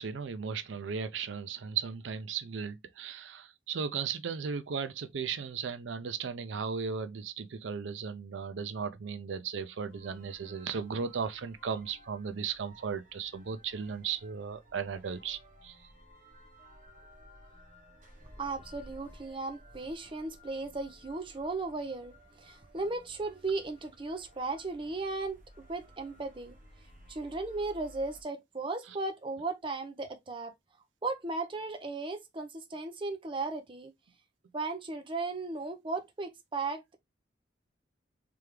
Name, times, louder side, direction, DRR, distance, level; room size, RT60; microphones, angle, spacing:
voice 1, 0.0-15.8, right 6 dB, 85° right, 0.5 m, -36 dB
sound 1, 9.9-28.2, equal, 45° right, 1.1 m, -56 dB
voice 2, 18.4-25.4 25.7-26.6 27.1-30.5 31.0-33.9 34.5-36.9, right 3 dB, 30° right, 0.7 m, -36 dB
3.5 x 3.3 x 3.2 m
head